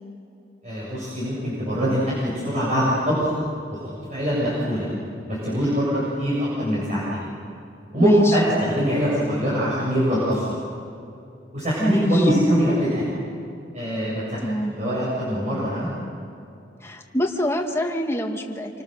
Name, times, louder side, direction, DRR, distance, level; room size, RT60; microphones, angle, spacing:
voice 1, 0.6-3.3 3.7-4.9 5.3-7.3 7.9-10.6 11.5-13.0 13.7-14.4 14.8-15.9, equal, 40° right, -7 dB, 7.5 m, -23 dB
voice 2, 8.0-8.4 11.8-12.3 14.4-14.7 16.8-18.8, equal, 15° left, 2 dB, 2.3 m, -25 dB
28.0 x 26.5 x 6.9 m, 2.6 s
head